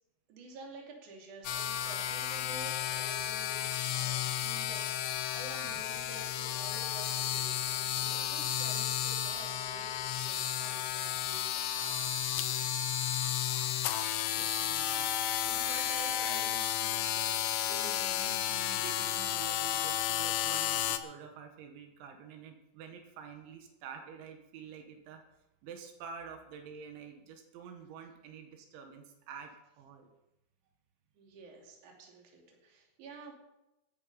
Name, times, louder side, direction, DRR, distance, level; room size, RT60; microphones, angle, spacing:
voice 1, 0.3-12.9 13.8-14.2 31.1-33.3, right 3 dB, 50° right, 0 dB, 3.8 m, -50 dB
sound 1, 1.4-21.0, left 11 dB, 90° left, 1.9 m, -33 dB
voice 2, 14.3-25.2 25.6-30.1, right 6 dB, 85° right, 4 dB, 3.8 m, -48 dB
16.0 x 9.8 x 5.5 m, 0.93 s
omnidirectional pair, 5.2 m